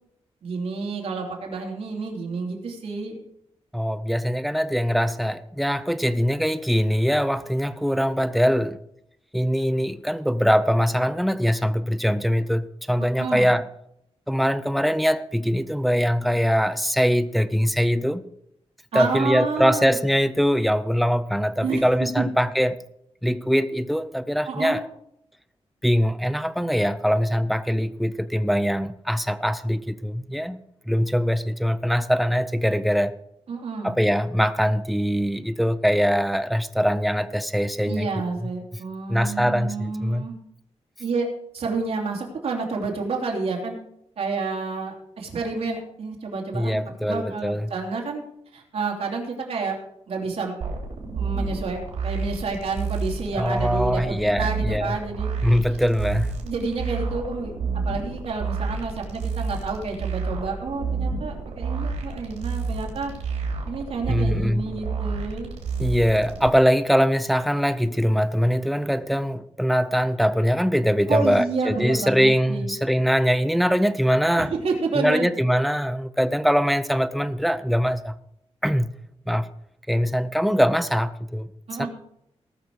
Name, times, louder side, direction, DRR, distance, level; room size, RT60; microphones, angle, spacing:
voice 1, 0.4-3.2 13.2-13.5 18.9-20.0 21.6-21.8 22.2-22.3 24.4-24.8 33.5-33.9 37.8-40.3 41.0-41.3 41.5-43.8 44.2-48.2 48.5-49.8 50.1-50.6 51.1-55.3 56.4-57.5 57.8-63.1 63.6-65.5 71.1-72.8 74.4-75.3 81.7-81.9, right 4 dB, 65° right, 0 dB, 2.9 m, -29 dB
voice 2, 3.7-8.8 9.3-13.7 14.3-18.2 18.9-22.8 23.2-24.9 25.8-30.6 30.9-33.1 33.8-38.1 38.4-38.5 39.1-40.3 46.5-47.7 53.3-55.0 55.4-56.3 64.1-64.6 65.8-74.5 75.0-78.1 78.6-78.9 79.3-79.5 79.9-81.5 81.8-81.9, equal, ahead, 11 dB, 0.5 m, -22 dB
sound 1, 50.6-66.5, right 4 dB, 85° right, 3.1 m, -30 dB
19.0 x 6.4 x 4.7 m, 0.76 s
wide cardioid pair, 150°, 11 cm